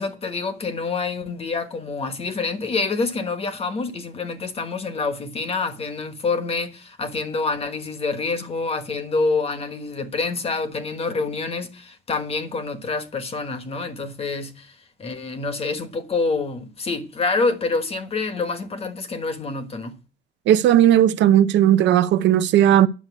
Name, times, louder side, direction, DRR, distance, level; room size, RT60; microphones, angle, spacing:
voice 1, 0.0-20.0, left 3 dB, 30° left, 1.3 m, -27 dB
voice 2, 20.5-22.9, right 11 dB, 70° right, 0.7 m, -16 dB
9.8 x 6.7 x 8.2 m
cardioid pair, 160°, 19 cm